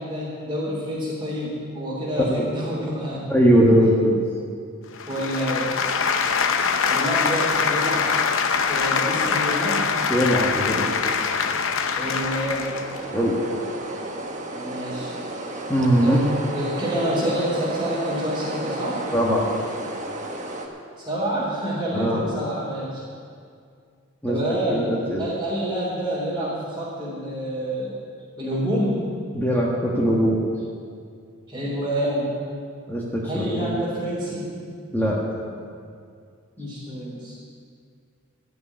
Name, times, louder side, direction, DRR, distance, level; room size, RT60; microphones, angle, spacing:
voice 1, 0.0-3.3 3.8-3.9 5.1-5.7 6.9-8.1 8.6-9.9 11.9-12.7 14.6-15.1 16.0-19.0 21.1-23.0 24.3-28.0 28.4-29.0 31.5-32.3 33.2-34.6 35.5-35.6 36.6-37.4, equal, 15° right, -11 dB, 3.5 m, -28 dB
voice 2, 2.2-2.5 3.3-4.2 10.1-10.9 11.2-11.3 13.1-13.3 15.7-16.2 19.1-19.5 21.9-22.2 24.2-25.2 29.3-30.4 32.9-33.8 34.9-35.2, equal, 10° left, -5 dB, 1.5 m, -21 dB
sound 1, 5.0-13.0, left 5 dB, 60° left, 0.8 m, -23 dB
sound 2, 12.0-20.7, right 2 dB, 35° right, 1.3 m, -33 dB
13.5 x 6.9 x 9.9 m, 2.3 s
head